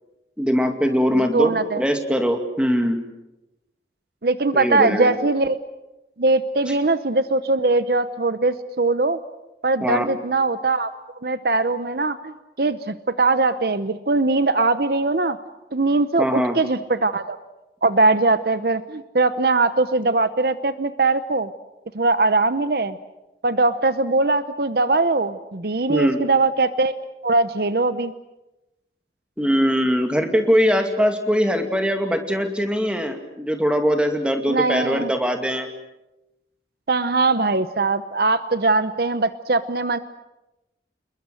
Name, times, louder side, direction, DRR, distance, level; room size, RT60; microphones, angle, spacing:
voice 1, 0.4-3.0 4.5-5.1 9.8-10.1 16.2-16.6 25.9-26.2 29.4-35.7, equal, 5° right, 5 dB, 2.3 m, -21 dB
voice 2, 1.1-1.8 4.2-5.6 6.2-9.2 9.6-10.9 11.2-15.4 15.7-17.4 17.8-21.5 21.9-23.0 23.4-27.0 27.2-28.1 34.5-35.1 36.9-40.0, right 3 dB, 55° right, 13 dB, 0.8 m, -21 dB
28.5 x 21.5 x 7.7 m, 0.97 s
head